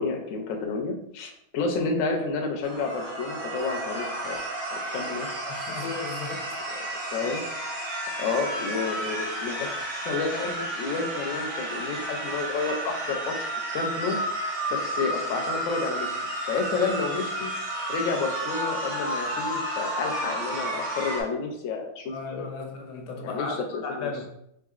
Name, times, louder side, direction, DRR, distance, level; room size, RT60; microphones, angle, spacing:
voice 1, 0.0-4.4 4.7-5.3 7.0-7.4 8.2-14.2 14.7-17.5 17.9-22.5 23.2-24.1, left 4 dB, 65° left, 2 dB, 0.9 m, -30 dB
sound 1, 2.6-21.2, right 1 dB, 60° right, 1.3 m, -32 dB
voice 2, 5.5-6.6 7.2-7.3 22.1-24.3, left 4 dB, 80° left, 3 dB, 1.2 m, -35 dB
3.7 x 3.4 x 2.4 m, 0.75 s
omnidirectional pair, 1.7 m